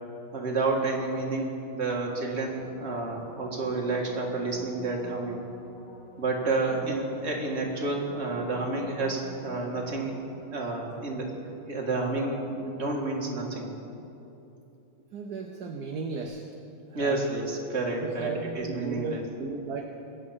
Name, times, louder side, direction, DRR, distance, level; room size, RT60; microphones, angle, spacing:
voice 1, 0.3-5.4 6.2-10.1 10.5-11.3 11.7-13.7 16.9-19.2, right 3 dB, 30° right, -1 dB, 2.0 m, -30 dB
sound 1, 2.3-10.9 16.2-16.3, equal, 55° left, 4.5 m, -49 dB
voice 2, 15.1-16.4 16.9-17.2 18.0-19.8, right 5 dB, 60° right, 3 dB, 1.1 m, -35 dB
21.5 x 8.7 x 5.7 m, 2.9 s
omnidirectional pair, 2.3 m